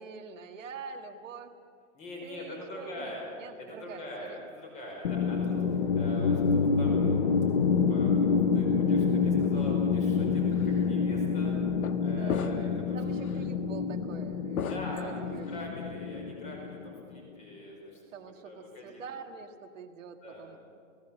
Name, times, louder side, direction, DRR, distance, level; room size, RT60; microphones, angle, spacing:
voice 1, 0.0-1.5 2.2-4.4 12.1-15.5 18.1-20.6, right 6 dB, 65° right, 4 dB, 1.9 m, -45 dB
voice 2, 1.9-3.2 3.6-5.6 5.9-7.2 7.9-11.5 12.0-13.0 14.7-18.0 18.4-19.0 20.2-20.5, left 1 dB, 15° left, 0 dB, 5.2 m, -43 dB
sound 1, 5.0-17.2, left 5 dB, 35° left, 0.7 m, -27 dB
sound 2, 10.6-10.8 11.7-12.0 12.3-12.8 13.2-13.4 14.5-15.6, left 7 dB, 85° left, 1.7 m, -36 dB
27.5 x 18.5 x 7.2 m, 2.5 s
hypercardioid pair, 180°, 41 cm